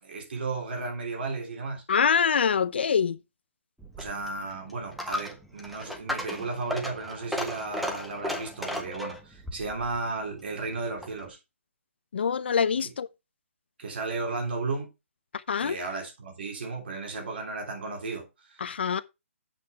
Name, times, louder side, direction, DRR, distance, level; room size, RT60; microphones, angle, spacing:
voice 1, 0.0-1.8 4.0-11.4 12.8-12.9 13.8-14.9 15.6-18.7, right 3 dB, 45° right, 3.4 m, -34 dB
voice 2, 1.9-3.2 12.1-13.1 15.5-15.8 18.6-19.0, left 6 dB, 50° left, 0.6 m, -24 dB
Coin (dropping), 3.8-11.3, left 1 dB, ahead, 0.5 m, -36 dB
7.7 x 5.7 x 4.4 m
hypercardioid pair, 170°, 7 cm